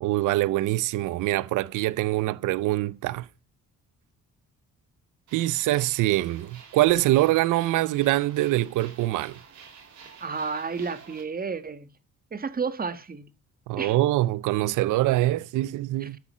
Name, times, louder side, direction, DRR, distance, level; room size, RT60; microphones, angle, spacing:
voice 1, 0.0-3.3 5.3-9.4 13.7-16.2, right 16 dB, 85° right, 0.6 m, -24 dB
sound 1, 5.3-11.2, right 6 dB, 70° right, 5.0 m, -49 dB
voice 2, 10.2-11.9 12.3-13.3 13.8-13.9 16.0-16.1, right 5 dB, 30° right, 1.5 m, -31 dB
13.0 x 4.9 x 7.3 m
cardioid pair, 90°, 30 cm